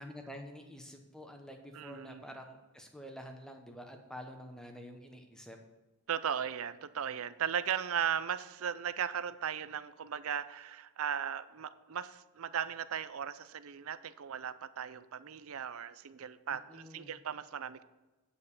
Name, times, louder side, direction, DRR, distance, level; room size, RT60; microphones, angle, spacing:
voice 1, 0.0-5.6 16.7-17.2, equal, 5° left, 4 dB, 0.9 m, -48 dB
voice 2, 1.7-2.2 6.1-17.8, right 8 dB, 70° right, 14 dB, 0.5 m, -37 dB
9.1 x 5.5 x 6.7 m, 1.1 s
head